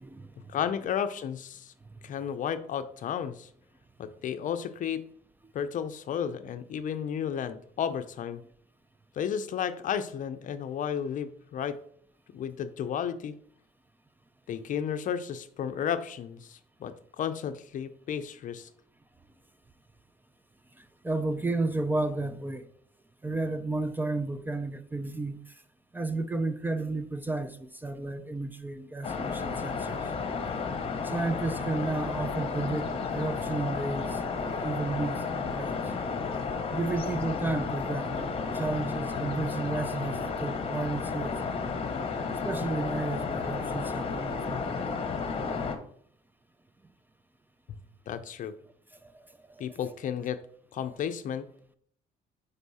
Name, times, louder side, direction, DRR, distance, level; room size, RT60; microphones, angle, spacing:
voice 1, 0.5-1.7 2.0-3.5 4.0-5.0 5.5-8.4 9.1-11.8 12.3-13.4 14.5-18.7 48.1-48.5 49.6-50.4 50.7-51.4, left 8 dB, 50° left, 0.5 m, -33 dB
voice 2, 21.0-22.6 23.2-25.5 25.9-30.0 31.0-35.8 36.7-38.3 38.5-41.6 42.4-44.9 49.1-49.2, right 2 dB, 10° right, 0.4 m, -32 dB
sound 1, 29.0-45.8, left 5 dB, 35° left, 0.9 m, -32 dB
5.4 x 4.6 x 4.1 m
cardioid pair, 110°, 17 cm